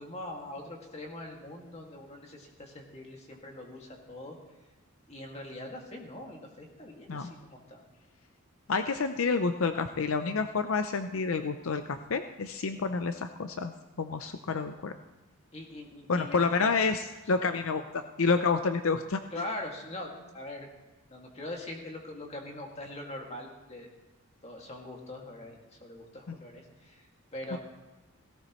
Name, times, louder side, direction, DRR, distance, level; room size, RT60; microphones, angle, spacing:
voice 1, 0.0-4.3 5.1-7.8 12.7-12.8 15.5-16.7 17.3-17.5 19.3-20.7 21.1-23.9 24.4-26.9 27.3-27.6, left 1 dB, 30° left, 0 dB, 2.1 m, -42 dB
voice 2, 8.7-13.7 14.0-14.9 16.1-19.2 26.3-26.4 27.5-27.6, left 4 dB, 75° left, 8 dB, 0.6 m, -29 dB
17.0 x 17.0 x 3.1 m, 1.2 s
head